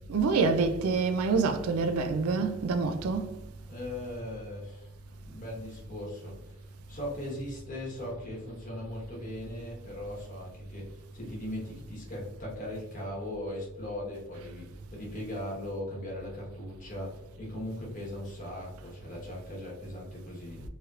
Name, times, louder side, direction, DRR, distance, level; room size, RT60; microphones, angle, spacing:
voice 1, 0.1-3.4, right 4 dB, 75° right, 0.3 m, -26 dB
voice 2, 3.7-4.9 5.2-20.6, left 1 dB, 35° left, 1.1 m, -39 dB
3.2 x 2.8 x 2.3 m
head